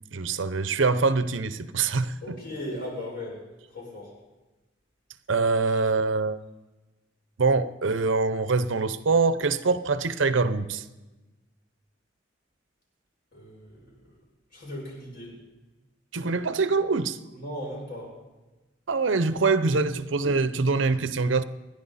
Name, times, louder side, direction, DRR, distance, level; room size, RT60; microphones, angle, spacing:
voice 1, 0.1-2.4 5.3-6.4 7.4-10.8 16.1-17.2 18.9-21.4, right 4 dB, 90° right, 0.8 m, -24 dB
voice 2, 2.2-3.4 3.7-4.1 13.3-13.9 14.5-15.4 17.3-18.2, left 1 dB, 55° left, 7.0 m, -37 dB
28.0 x 11.0 x 4.2 m
head